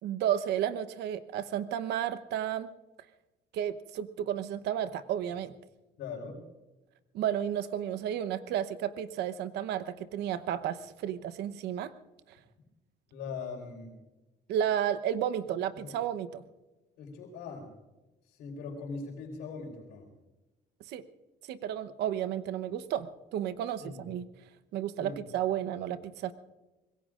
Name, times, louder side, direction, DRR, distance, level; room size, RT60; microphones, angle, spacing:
voice 1, 0.0-2.7 3.5-5.5 7.1-11.9 14.5-16.4 20.9-21.0 21.5-24.2 24.7-26.3, right 10 dB, 80° right, 12 dB, 1.0 m, -32 dB
voice 2, 6.0-6.4 13.1-13.9 15.7-15.9 17.0-17.7 18.3-20.1 23.8-24.0 25.0-25.2, left 4 dB, 90° left, -5 dB, 4.3 m, -41 dB
25.0 x 22.0 x 2.5 m, 1.1 s
cardioid pair, 110°, 17 cm